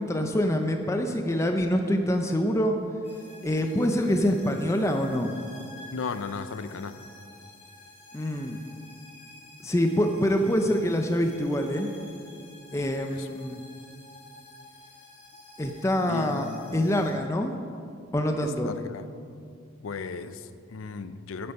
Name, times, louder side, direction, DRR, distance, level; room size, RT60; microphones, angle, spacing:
voice 1, 0.0-2.8 3.4-5.3 8.1-8.6 9.6-11.9 12.7-13.6 15.6-17.6 18.1-18.7, equal, 15° left, 5 dB, 0.5 m, -25 dB
sound 1, 3.0-17.1, left 2 dB, 35° left, 2.6 m, -50 dB
voice 2, 5.9-7.0 13.1-13.3 16.1-17.1 18.4-19.1 19.8-21.5, left 4 dB, 85° left, 13 dB, 0.5 m, -36 dB
8.7 x 8.5 x 5.4 m, 2.4 s
head